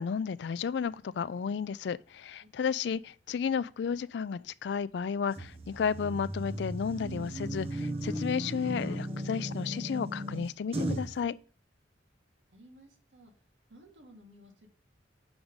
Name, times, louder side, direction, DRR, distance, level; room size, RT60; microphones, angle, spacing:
voice 1, 0.0-11.4, left 6 dB, 70° left, 0.3 m, -33 dB
sound 1, 5.4-11.2, right 1 dB, 30° right, 0.8 m, -36 dB
voice 2, 12.5-13.3 13.7-14.7, equal, 85° right, 1.9 m, -55 dB
6.0 x 5.1 x 5.3 m
head